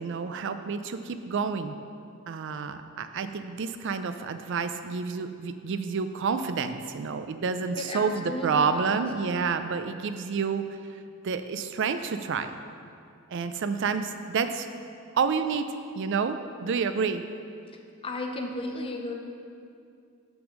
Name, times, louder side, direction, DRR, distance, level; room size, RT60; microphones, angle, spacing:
voice 1, 0.0-1.8 2.3-10.6 10.9-12.6 13.3-14.7 15.1-17.2, right 5 dB, 55° right, 9 dB, 0.4 m, -29 dB
voice 2, 7.8-9.0 18.0-19.1, left 1 dB, 25° left, 2 dB, 0.6 m, -34 dB
6.0 x 5.4 x 6.2 m, 2.4 s
head